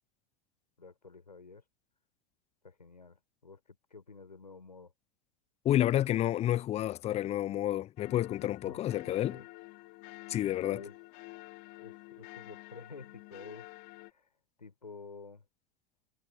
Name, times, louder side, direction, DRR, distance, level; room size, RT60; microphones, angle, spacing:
voice 1, 0.8-1.6 2.6-4.9 8.6-9.4 10.6-11.0 11.8-14.3 14.6-15.4, left 4 dB, 90° left, 6.3 m, -50 dB
voice 2, 5.6-9.4 10.3-10.8, left 13 dB, 30° left, 0.9 m, -30 dB
sound 1, 8.0-14.1, left 30 dB, 50° left, 4.5 m, -50 dB
figure-of-eight pair, 90°, 21 cm